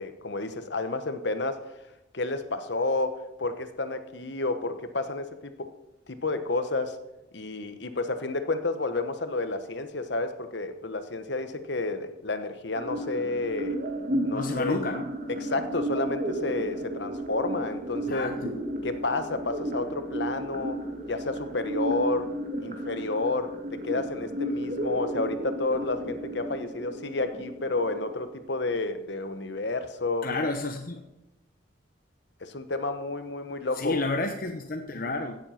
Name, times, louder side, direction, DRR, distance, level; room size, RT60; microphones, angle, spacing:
voice 1, 0.0-1.7 2.1-5.7 6.1-7.0 7.3-13.8 14.2-14.8 15.3-18.3 18.8-22.3 22.6-30.3 32.4-34.0, left 2 dB, 60° left, 9 dB, 1.2 m, -30 dB
sound 1, 12.8-28.7, right 1 dB, 45° right, 1.9 m, -33 dB
voice 2, 14.1-15.1 18.1-18.5 30.2-31.0 33.8-35.4, left 2 dB, 45° left, 4 dB, 0.9 m, -30 dB
16.5 x 7.6 x 5.9 m, 0.94 s
head